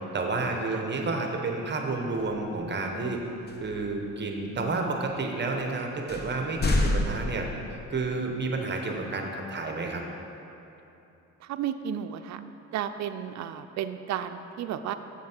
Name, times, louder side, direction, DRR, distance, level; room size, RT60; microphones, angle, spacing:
voice 1, 0.1-3.2 3.6-10.0, right 3 dB, 35° right, 2 dB, 1.0 m, -30 dB
sound 1, 2.1-2.4 3.5-3.9 4.5-4.6 5.5-5.6 6.1-8.0, left 2 dB, 35° left, 0.9 m, -29 dB
voice 2, 11.4-12.4 12.7-14.9, right 9 dB, 65° right, 9 dB, 0.5 m, -33 dB
7.3 x 7.2 x 4.4 m, 2.9 s
cardioid pair, 90°, 30 cm